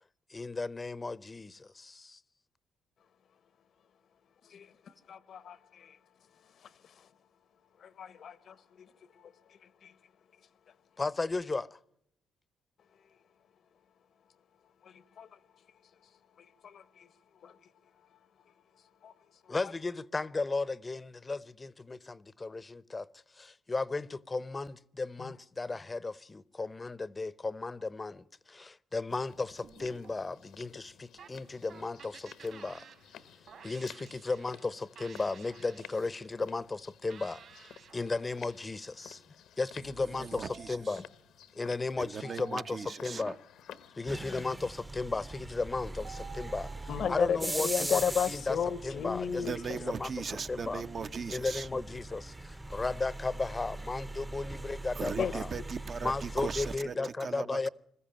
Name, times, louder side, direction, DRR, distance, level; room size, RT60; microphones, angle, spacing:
voice 1, 0.3-2.2 11.0-11.8 19.5-23.1 23.4-32.8 33.6-39.2 39.6-41.0 41.5-43.4 44.0-48.6 48.8-49.5 49.8-50.1 50.5-50.8 51.3-55.5 56.0-57.7, left 3 dB, 25° left, 0.7 m, -35 dB
voice 2, 5.1-5.9 7.8-8.9 9.2-9.3 15.2-15.3 16.6-16.8 17.4-17.5 19.0-19.1 25.2-25.3 46.9-49.8 55.2-55.3, left 7 dB, 60° left, 0.9 m, -33 dB
sound 1, 29.1-44.5, left 9 dB, 80° left, 1.1 m, -54 dB
sound 2, 29.6-30.7 31.2-34.7 35.0-36.3 37.1-38.6 40.4-41.3 42.2-43.3 44.2-44.5 45.2-45.4 46.0-47.8, right 7 dB, 65° right, 4.3 m, -53 dB
voice 3, 40.0-41.0 42.0-43.4 49.4-51.7 55.0-57.7, right 5 dB, 45° right, 0.8 m, -39 dB
sound 3, 44.1-56.8, right 2 dB, 15° right, 0.8 m, -41 dB
21.0 x 14.5 x 8.9 m
cardioid pair, 90°, 0 cm